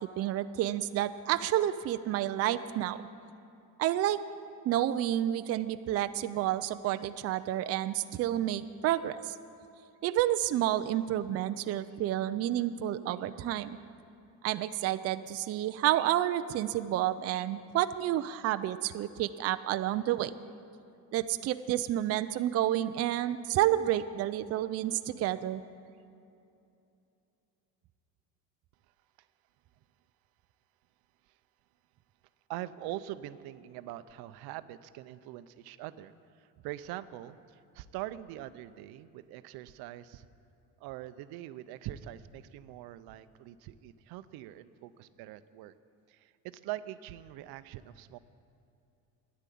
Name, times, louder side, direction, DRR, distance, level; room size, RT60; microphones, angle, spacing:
voice 1, 0.2-3.0 3.8-4.2 4.7-9.3 10.0-13.8 14.4-20.3 21.1-25.6, right 13 dB, 40° right, 11 dB, 0.4 m, -30 dB
voice 2, 32.5-37.4 37.7-40.2 40.8-45.7 46.1-48.2, right 14 dB, 80° right, 13 dB, 0.7 m, -43 dB
13.5 x 10.5 x 8.4 m, 2.7 s
cardioid pair, 150°, 37 cm